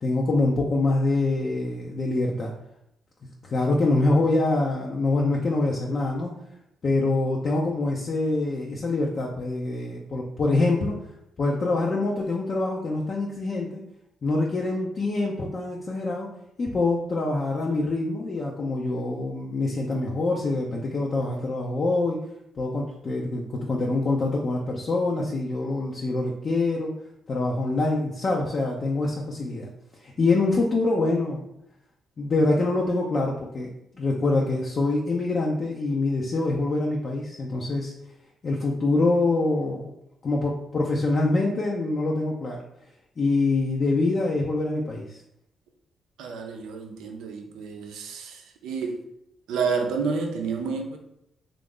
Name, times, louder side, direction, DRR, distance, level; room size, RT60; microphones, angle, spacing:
voice 1, 0.0-2.5 3.4-6.3 6.8-10.9 11.4-13.8 14.2-16.3 16.6-22.2 22.6-26.9 27.3-29.7 30.0-31.4 32.2-37.9 38.4-39.9 40.2-42.6 43.2-45.2, left 2 dB, 50° left, -3 dB, 0.5 m, -25 dB
voice 2, 46.2-49.0 49.5-51.0, right 5 dB, 80° right, 3 dB, 0.5 m, -30 dB
3.0 x 2.5 x 3.6 m, 0.78 s
hypercardioid pair, 50°, 0 cm